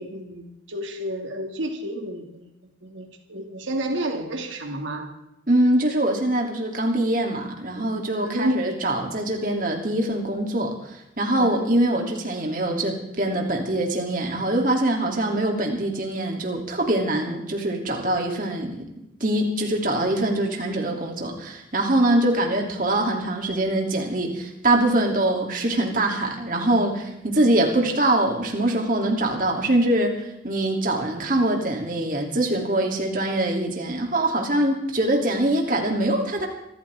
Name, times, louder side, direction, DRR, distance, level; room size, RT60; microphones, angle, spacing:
voice 1, 0.0-2.5 2.8-5.1 8.2-8.7 11.4-11.7, right 1 dB, 90° right, 3 dB, 2.3 m, -30 dB
voice 2, 5.5-10.8 11.2-18.9 19.2-30.2 30.4-36.5, right 1 dB, 45° right, 1 dB, 2.9 m, -23 dB
26.0 x 14.0 x 3.6 m, 0.86 s
head